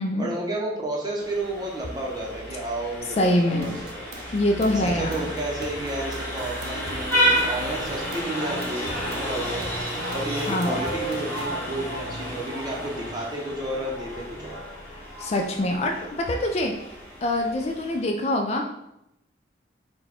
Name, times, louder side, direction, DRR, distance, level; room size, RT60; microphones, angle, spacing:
voice 1, 0.2-3.7 4.7-9.7 10.1-14.6, right 1 dB, 20° right, -2 dB, 0.7 m, -31 dB
Vehicle horn car horn honking, 1.2-18.0, equal, 10° left, 1.0 m, -31 dB
voice 2, 3.2-3.7 4.3-5.3 10.5-10.8 14.9-16.7 17.2-18.6, left 1 dB, 35° left, 3 dB, 0.3 m, -24 dB
sound 1, 3.6-7.5 7.9-11.5, right 2 dB, 60° right, 0.6 m, -43 dB
4.2 x 2.3 x 4.2 m, 0.84 s
head